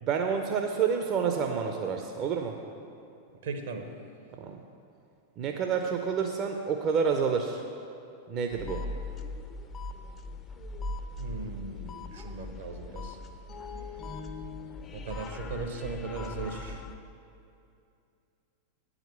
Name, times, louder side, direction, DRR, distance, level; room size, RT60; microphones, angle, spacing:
voice 1, 0.0-2.6 4.3-4.6 5.4-7.6 8.3-8.8, right 6 dB, 35° right, 4 dB, 0.6 m, -29 dB
voice 2, 3.4-3.8 11.2-13.2 14.9-16.8, right 3 dB, 60° right, 5 dB, 0.9 m, -38 dB
sound 1, 8.5-17.0, left 2 dB, 25° left, 0.5 m, -39 dB
9.1 x 5.0 x 7.6 m, 2.6 s
figure-of-eight pair, 90°, 0 cm